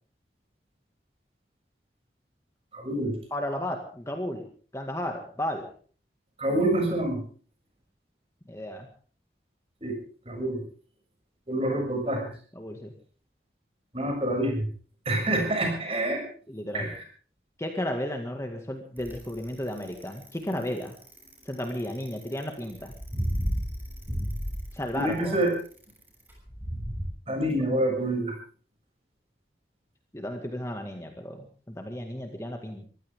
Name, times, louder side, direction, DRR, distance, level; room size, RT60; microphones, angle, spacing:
voice 1, 2.7-3.1 6.4-7.2 9.8-10.0 10.3-10.6 11.5-12.3 13.9-14.7 15.1-16.3 16.7-17.0 25.0-25.5 27.3-28.3, right 1 dB, 35° right, 2 dB, 6.9 m, -27 dB
voice 2, 3.3-4.4 4.7-5.7 8.5-8.9 12.6-12.9 16.5-16.9 17.6-21.0 21.5-22.9 24.7-25.4 30.1-32.9, left 1 dB, 15° left, 3 dB, 1.9 m, -33 dB
Bicycle, 19.0-27.0, equal, 10° right, 6.7 m, -33 dB
24.0 x 16.0 x 3.7 m, 0.43 s
head